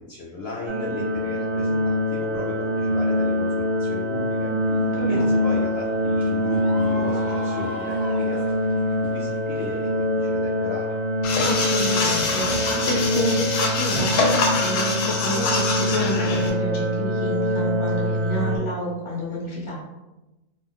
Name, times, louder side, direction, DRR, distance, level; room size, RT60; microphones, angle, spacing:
voice 1, 0.1-4.5 5.0-9.9 10.2-11.0, left 2 dB, 70° left, -4 dB, 0.6 m, -35 dB
sound 1, 0.7-18.6, left 1 dB, 60° right, 0.7 m, -24 dB
sound 2, 4.6-9.9, equal, ahead, 0.4 m, -41 dB
voice 2, 4.9-5.3 11.4-19.8, equal, 25° left, -5 dB, 0.7 m, -30 dB
sound 3, 11.2-16.5, left 3 dB, 85° left, 1.1 m, -24 dB
2.5 x 2.3 x 3.6 m, 1.0 s
omnidirectional pair, 1.6 m